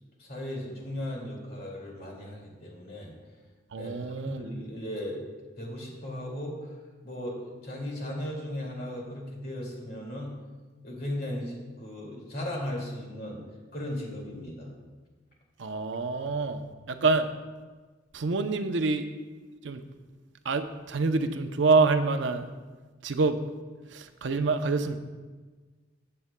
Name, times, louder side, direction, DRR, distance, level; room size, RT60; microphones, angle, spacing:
voice 1, 0.2-3.2 3.7-4.0 4.2-5.2 5.6-6.7 7.0-10.4 10.8-13.4 13.7-14.8, left 1 dB, 55° left, -1 dB, 2.2 m, -36 dB
voice 2, 3.7-4.4 15.6-16.6 16.9-17.3 18.1-19.0 19.6-19.8 20.4-22.5 23.0-23.4 23.9-25.0, right 3 dB, 70° right, 8 dB, 0.6 m, -26 dB
15.0 x 7.7 x 2.2 m, 1.3 s
head